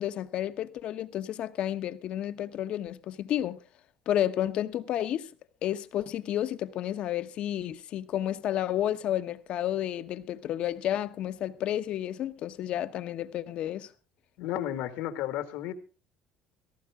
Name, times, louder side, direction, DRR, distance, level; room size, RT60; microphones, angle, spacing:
voice 1, 0.0-3.6 4.1-5.3 5.6-13.9, left 11 dB, 50° left, 1.0 m, -31 dB
voice 2, 14.4-15.7, left 12 dB, 75° left, 2.0 m, -33 dB
16.5 x 14.5 x 3.6 m
cardioid pair, 140°, 2 cm